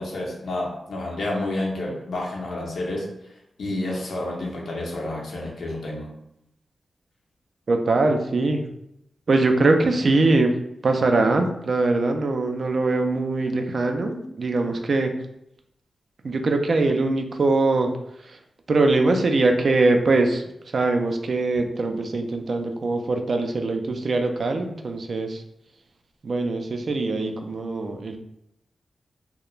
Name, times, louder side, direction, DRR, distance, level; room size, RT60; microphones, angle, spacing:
voice 1, 0.0-3.1 3.6-6.1, left 2 dB, 80° left, -2 dB, 0.6 m, -29 dB
voice 2, 7.7-8.6 9.3-10.5 10.8-15.1 16.2-17.9 18.2-18.4 18.7-20.4 20.7-25.4 26.2-28.2, right 3 dB, 65° right, 4 dB, 0.3 m, -22 dB
2.4 x 2.1 x 3.0 m, 0.79 s
cardioid pair, 50°, 0 cm